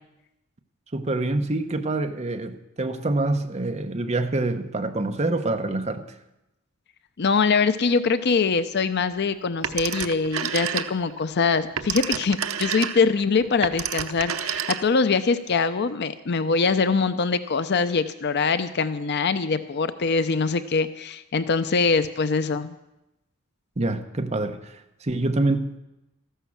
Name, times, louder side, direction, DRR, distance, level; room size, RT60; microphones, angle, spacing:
voice 1, 0.9-6.1 23.8-25.8, right 2 dB, 35° right, 7 dB, 0.9 m, -26 dB
voice 2, 7.2-22.7, left 4 dB, 55° left, 12 dB, 0.6 m, -23 dB
Telephone, 9.6-11.2 11.5-15.1, right 8 dB, 85° right, 0.8 m, -29 dB
14.0 x 11.0 x 7.2 m, 0.92 s
head